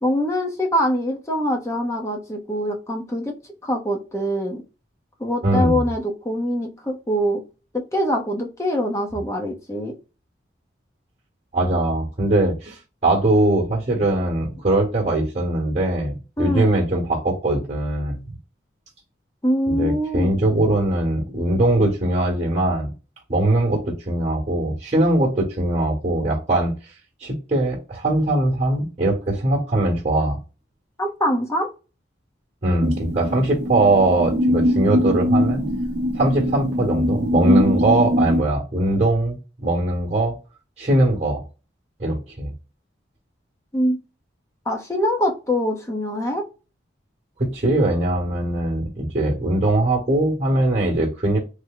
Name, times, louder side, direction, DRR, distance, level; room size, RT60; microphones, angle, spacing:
voice 1, 0.0-3.4 3.6-4.6 5.2-7.4 7.7-9.9 16.4-16.7 19.4-20.3 31.0-31.7 43.7-44.0 44.7-46.5, equal, 15° left, 1 dB, 0.6 m, -23 dB
voice 2, 5.4-5.8 11.5-18.4 19.7-22.9 23.3-26.7 27.2-30.4 32.6-35.6 36.1-40.4 40.8-41.4 42.0-42.5 47.4-51.4, right 1 dB, 35° right, -1 dB, 1.0 m, -21 dB
sound 1, 32.8-38.4, equal, 60° right, 0.5 m, -22 dB
3.3 x 2.0 x 3.7 m, 0.30 s
head